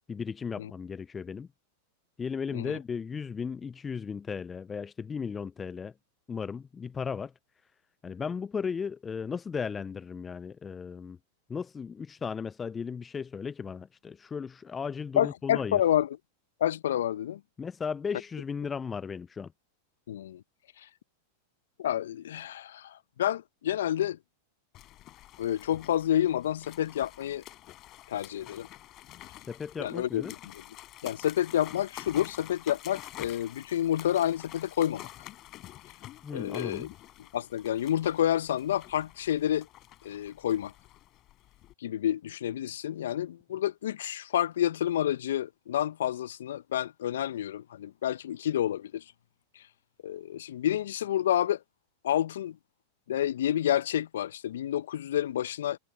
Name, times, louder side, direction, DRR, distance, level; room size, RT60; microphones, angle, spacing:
voice 1, 0.1-1.5 2.2-5.9 6.3-7.3 8.0-11.2 11.5-15.8 17.6-19.5 29.5-30.3 36.2-36.9, left 6 dB, 20° left, 0.7 m, -35 dB
voice 2, 15.2-16.1 16.6-17.4 20.1-20.4 20.8-20.9 21.8-24.2 25.4-27.4 28.1-28.7 29.8-30.3 30.5-30.6 31.0-35.1 36.3-36.9 37.3-39.7 40.0-40.7 41.8-49.0 50.0-51.6 52.0-52.6 53.1-55.8, left 11 dB, 70° left, 1.0 m, -29 dB
sound 1, 24.7-41.7, left 15 dB, 40° left, 7.5 m, -49 dB
figure-of-eight pair, 95°, 0 cm